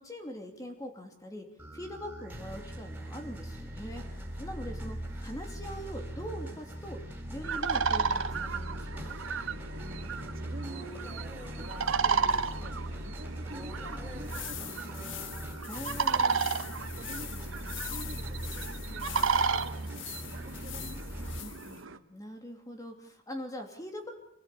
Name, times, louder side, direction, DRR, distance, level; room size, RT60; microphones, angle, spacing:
voice 1, 0.0-7.0 7.3-9.2 15.7-16.4 21.4-24.1, equal, 20° left, 3 dB, 2.8 m, -43 dB
sound 1, 1.6-21.4, equal, 10° right, 4.9 m, -40 dB
sound 2, 7.4-22.0, right 5 dB, 85° right, 1.3 m, -33 dB
voice 2, 9.7-12.8 13.0-15.6 16.9-21.4, right 1 dB, 50° right, 3 dB, 2.2 m, -49 dB
sound 3, 14.1-21.8, left 11 dB, 70° left, 1.6 m, -44 dB
26.0 x 18.0 x 8.5 m, 0.77 s
head